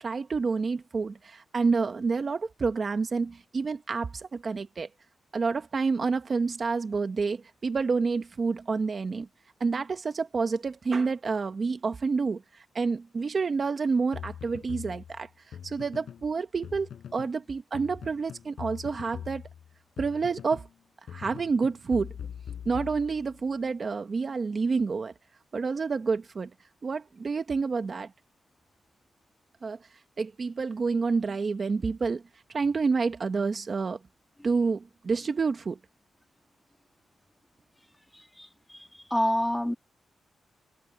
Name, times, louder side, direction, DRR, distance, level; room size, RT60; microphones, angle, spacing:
voice 1, 0.0-4.9 5.3-9.3 9.6-15.3 15.6-19.4 20.0-20.7 21.1-22.1 22.6-25.1 25.5-26.5 26.8-28.1 29.6-29.8 30.2-32.2 32.5-34.0 34.4-35.8, right 4 dB, 40° right, 1.2 m, -28 dB
sound 1, 14.1-16.3 16.6-17.4 17.7-20.7 21.1-23.5, left 8 dB, 75° left, 6.1 m, -42 dB
voice 2, 38.1-39.7, left 1 dB, 5° left, 2.5 m, -29 dB
wide cardioid pair, 115°, 0 cm